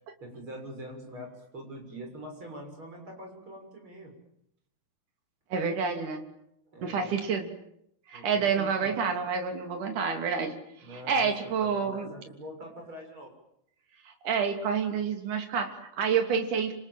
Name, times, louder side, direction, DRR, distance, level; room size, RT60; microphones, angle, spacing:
voice 1, 0.2-4.1 6.7-7.2 8.1-8.9 10.8-13.3, equal, 30° right, 3 dB, 7.5 m, -44 dB
voice 2, 5.5-6.2 6.8-7.5 8.1-10.6 10.9-12.1 14.2-16.7, right 6 dB, 60° right, 4 dB, 4.4 m, -28 dB
28.0 x 27.5 x 7.6 m, 0.77 s
omnidirectional pair, 4.3 m